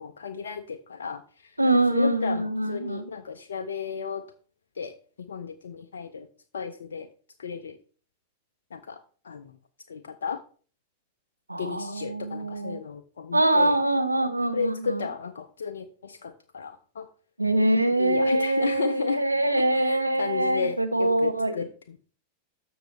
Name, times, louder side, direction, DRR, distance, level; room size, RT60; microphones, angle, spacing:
voice 1, 0.0-4.2 4.8-6.3 6.5-7.1 7.4-7.8 8.7-9.5 9.9-10.4 11.6-13.8 14.5-17.1 18.0-19.2 19.6-22.0, left 5 dB, 70° left, 7 dB, 0.6 m, -34 dB
voice 2, 1.6-3.1 11.5-12.8 13.3-15.0 17.4-21.5, right 1 dB, 85° right, 8 dB, 1.0 m, -24 dB
12.5 x 6.8 x 3.2 m, 0.41 s
figure-of-eight pair, 90°, 0 cm